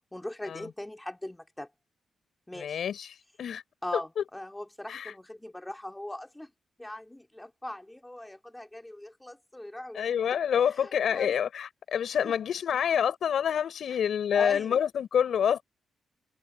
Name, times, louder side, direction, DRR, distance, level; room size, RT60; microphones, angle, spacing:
voice 1, 0.1-1.7 2.5-2.8 3.8-6.5 6.8-10.1 10.7-11.3 12.2-12.4 13.9-14.0 14.3-14.8, left 1 dB, 10° left, 2.3 m, -40 dB
voice 2, 2.5-3.6 3.9-4.2 4.9-5.1 9.9-15.6, left 8 dB, 65° left, 5.2 m, -27 dB
wide cardioid pair, 150°, 0 cm